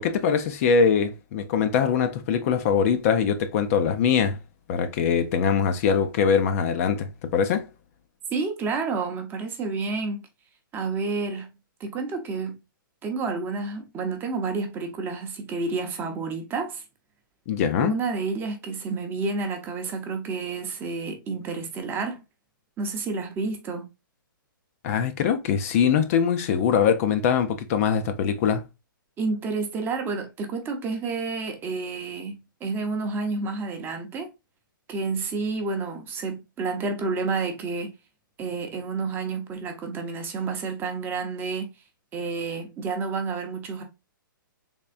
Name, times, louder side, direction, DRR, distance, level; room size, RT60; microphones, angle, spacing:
voice 1, 0.0-4.4 4.7-7.7 17.5-17.9 24.8-28.6, left 7 dB, 40° left, 0.5 m, -22 dB
voice 2, 8.3-10.2 10.7-11.5 11.8-12.6 13.0-16.8 17.8-22.2 22.8-23.8 29.2-34.3 34.9-37.9 38.4-41.7 42.1-43.8, right 4 dB, 20° right, 0.7 m, -30 dB
3.5 x 3.2 x 2.4 m
hypercardioid pair, 140°, 11 cm